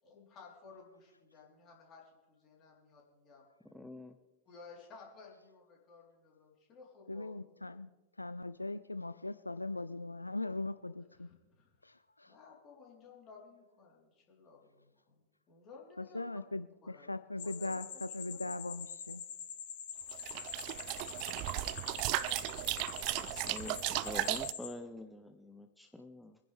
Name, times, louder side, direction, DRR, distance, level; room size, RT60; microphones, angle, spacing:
voice 1, 0.0-3.4 4.5-7.3 11.1-11.8 12.2-16.2 16.6-17.1 17.4-18.0 18.3-18.4, left 4 dB, 30° left, -2 dB, 3.8 m, -56 dB
voice 2, 3.7-4.1 23.1-26.4, left 1 dB, 5° left, 6 dB, 0.6 m, -46 dB
voice 3, 7.1-7.9 8.2-11.3 11.8-12.3 16.0-19.2, left 2 dB, 85° left, 12 dB, 0.3 m, -40 dB
sound 1, 17.4-24.7, left 8 dB, 55° left, 1.7 m, -45 dB
sound 2, 20.1-24.5, right 17 dB, 45° right, 0.4 m, -36 dB
24.0 x 10.5 x 3.4 m, 1.2 s
figure-of-eight pair, 90°, 0 cm